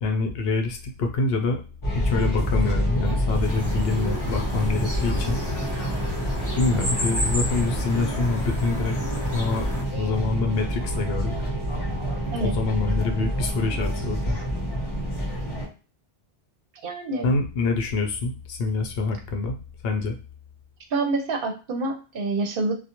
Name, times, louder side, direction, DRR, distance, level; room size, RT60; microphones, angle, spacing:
voice 1, 0.0-1.6 1.9-5.4 6.6-9.0 9.3-9.7 9.9-11.5 12.4-14.4 17.2-19.6 19.8-20.2, left 3 dB, 70° left, 4 dB, 0.8 m, -26 dB
sound 1, 1.8-15.7, equal, 30° left, 0.9 m, -27 dB
sound 2, 3.4-9.8, left 1 dB, 15° right, 0.8 m, -33 dB
voice 2, 16.8-17.3 20.9-22.7, right 3 dB, 65° right, 4 dB, 0.7 m, -27 dB
2.3 x 2.1 x 2.8 m, 0.34 s
omnidirectional pair, 1.1 m